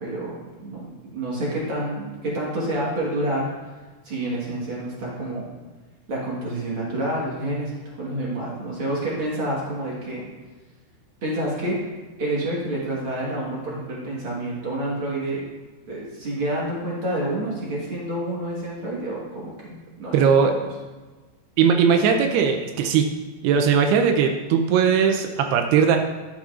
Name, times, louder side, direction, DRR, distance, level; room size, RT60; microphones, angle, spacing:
voice 1, 0.0-3.5 4.0-5.5 6.1-10.2 11.2-11.8 12.2-15.4 15.9-20.2, right 1 dB, 55° right, -5 dB, 1.4 m, -28 dB
voice 2, 20.1-20.5 21.6-23.1 23.4-26.0, right 7 dB, 85° right, 5 dB, 2.6 m, -19 dB
11.5 x 7.2 x 2.5 m, 1.3 s
omnidirectional pair, 4.6 m